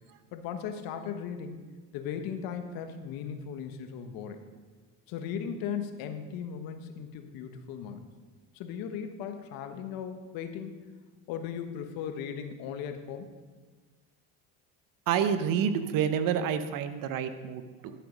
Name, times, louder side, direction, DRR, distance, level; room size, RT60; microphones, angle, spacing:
voice 1, 0.3-1.6 1.9-4.4 5.1-8.0 8.5-10.7 11.3-13.3, left 7 dB, 75° left, 7 dB, 1.3 m, -37 dB
voice 2, 15.1-17.9, right 8 dB, 65° right, 10 dB, 1.0 m, -28 dB
11.5 x 7.6 x 5.3 m, 1.4 s
supercardioid pair, 90°, 36 cm